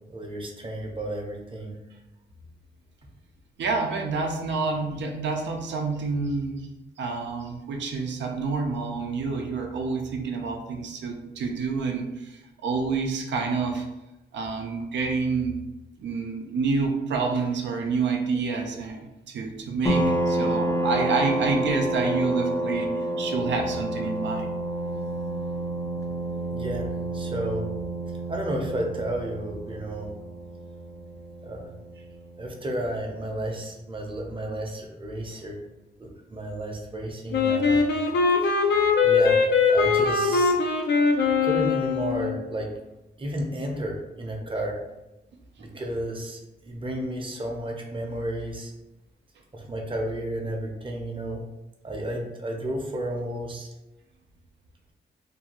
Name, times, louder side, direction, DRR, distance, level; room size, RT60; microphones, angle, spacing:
voice 1, 0.1-1.8 26.5-27.7 28.3-30.1 31.4-31.7 32.4-35.6 36.0-37.9 38.4-38.5 39.0-39.4 39.7-40.6 41.4-42.7 43.2-44.8 45.6-48.7 49.5-51.4 51.8-53.7, right 1 dB, 30° right, 1 dB, 0.6 m, -32 dB
voice 2, 3.6-6.7 7.0-13.9 14.3-15.6 16.0-24.5 45.6-45.8, right 4 dB, 85° right, 2 dB, 0.4 m, -28 dB
sound 1, 19.9-33.1, right 1 dB, 15° left, 0.4 m, -29 dB
Wind instrument woodwind instrument, 37.3-42.4, left 5 dB, 70° left, 0.5 m, -21 dB
2.6 x 2.3 x 2.8 m, 0.97 s
cardioid pair, 80°, 18 cm